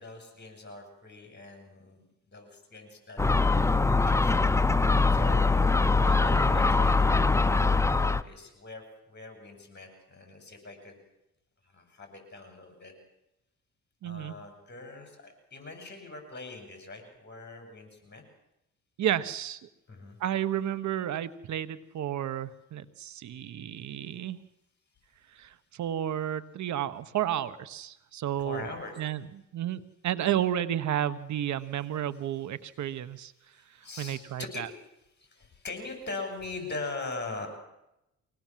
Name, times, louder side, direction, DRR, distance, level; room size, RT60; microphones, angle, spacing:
voice 1, 0.0-4.3 5.1-11.0 11.6-12.9 14.0-18.2 19.9-20.2 28.4-29.0 32.6-32.7 33.5-34.6 35.2-37.5, left 3 dB, 35° left, 5 dB, 7.3 m, -42 dB
Gull seagull, 3.2-8.2, left 3 dB, 10° left, 0.8 m, -23 dB
voice 2, 14.0-14.3 19.0-19.6 20.2-24.4 25.3-29.2 29.5-33.3 34.0-34.7, right 11 dB, 70° right, 15 dB, 1.3 m, -32 dB
24.5 x 18.0 x 7.6 m, 0.87 s
cardioid pair, 90°, 30 cm